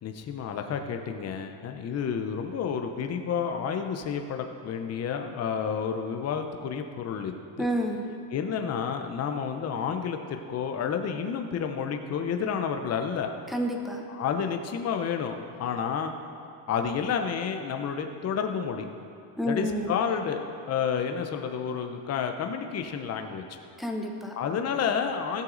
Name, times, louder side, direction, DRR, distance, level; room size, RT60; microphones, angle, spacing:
voice 1, 0.0-7.7 8.3-13.3 14.1-16.1 16.7-18.9 19.5-23.5 24.4-25.4, left 7 dB, 30° left, 5 dB, 0.8 m, -30 dB
voice 2, 7.6-8.1 13.5-14.0 19.4-19.9 23.8-24.3, equal, ahead, 1 dB, 0.8 m, -29 dB
16.0 x 7.9 x 4.0 m, 2.5 s
cardioid pair, 145°, 47 cm